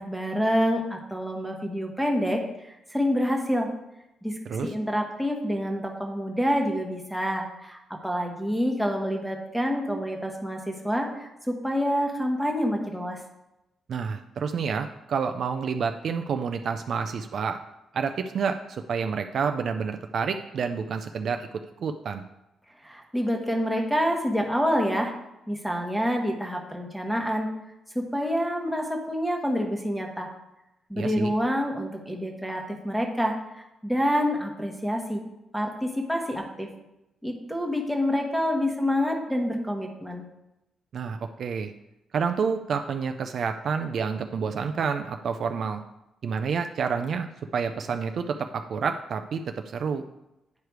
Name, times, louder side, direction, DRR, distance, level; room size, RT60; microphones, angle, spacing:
voice 1, 0.0-2.4 2.9-3.7 4.2-13.2 22.8-25.1 25.5-27.5 27.9-30.3 30.9-35.2 35.5-36.7 37.2-40.2, equal, ahead, 1 dB, 1.1 m, -27 dB
voice 2, 13.9-17.6 17.9-21.5 21.8-22.2 31.0-31.3 40.9-41.7 42.1-45.8 46.2-47.3 47.5-50.0, right 6 dB, 50° right, 7 dB, 0.4 m, -29 dB
9.4 x 4.9 x 4.7 m, 0.91 s
cardioid pair, 160°, 0 cm